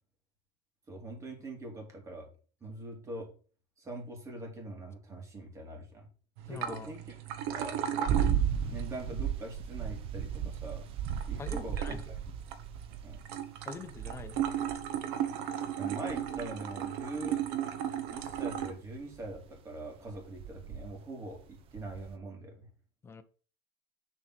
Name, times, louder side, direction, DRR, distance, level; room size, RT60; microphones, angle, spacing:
voice 1, 0.9-2.3 2.6-3.3 3.8-6.1 6.4-7.1 7.5-7.8 8.7-10.9 11.3-12.2 13.0-13.2 15.8-17.4 18.1-22.7, right 2 dB, 20° right, 2 dB, 2.9 m, -43 dB
sound 1, 6.4-18.7, right 9 dB, 75° right, 1.3 m, -37 dB
voice 2, 6.5-6.9 11.4-12.1 13.7-14.4 23.0-23.2, left 4 dB, 20° left, 9 dB, 0.8 m, -44 dB
sound 2, 8.1-13.3 13.8-14.9 16.1-17.2 18.1-19.4 20.1-20.9 21.4-22.2, right 8 dB, 45° right, 1.0 m, -35 dB
7.1 x 4.5 x 6.1 m, 0.38 s
supercardioid pair, 135°, 13 cm